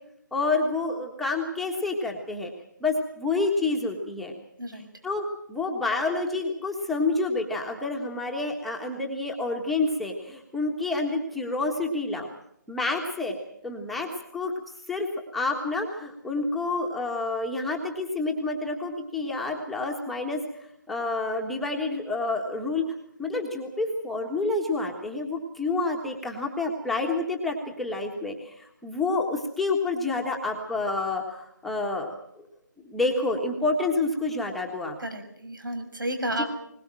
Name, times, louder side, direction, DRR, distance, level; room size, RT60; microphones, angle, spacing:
voice 1, 0.3-2.5 2.8-4.3 4.7-12.3 12.7-13.3 13.6-14.5 14.9-15.1 15.3-20.4 20.9-22.8 23.2-32.5 32.8-34.9 36.4-36.5, left 3 dB, ahead, 0 dB, 1.5 m, -28 dB
voice 2, 35.0-36.5, right 1 dB, 90° right, 7 dB, 6.7 m, -31 dB
21.5 x 20.0 x 7.6 m, 0.72 s
figure-of-eight pair, 165°, 11 cm